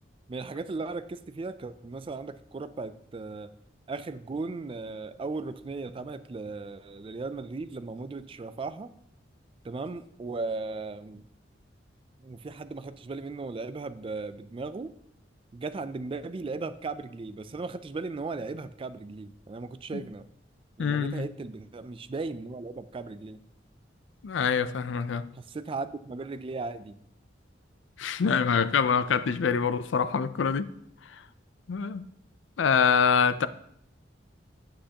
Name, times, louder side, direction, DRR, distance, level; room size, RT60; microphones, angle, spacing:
voice 1, 0.3-3.5 3.9-8.9 9.6-11.2 12.2-14.9 15.5-20.2 20.8-23.4 25.4-27.0, right 3 dB, 30° right, 0.3 m, -37 dB
voice 2, 20.8-21.2 24.2-25.3 28.0-30.7 31.7-32.0 32.6-33.5, left 6 dB, 85° left, 0.4 m, -25 dB
8.6 x 7.4 x 2.9 m
head